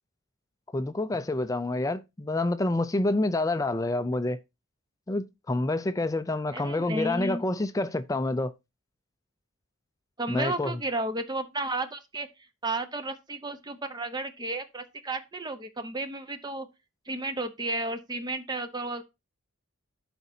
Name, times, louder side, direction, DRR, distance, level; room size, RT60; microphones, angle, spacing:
voice 1, 0.7-4.4 5.1-8.5 10.3-10.8, left 2 dB, 15° left, 0.3 m, -28 dB
voice 2, 6.5-7.4 10.2-12.3 12.6-16.7 17.1-19.0, right 2 dB, 20° right, 0.7 m, -33 dB
12.0 x 5.0 x 2.7 m
head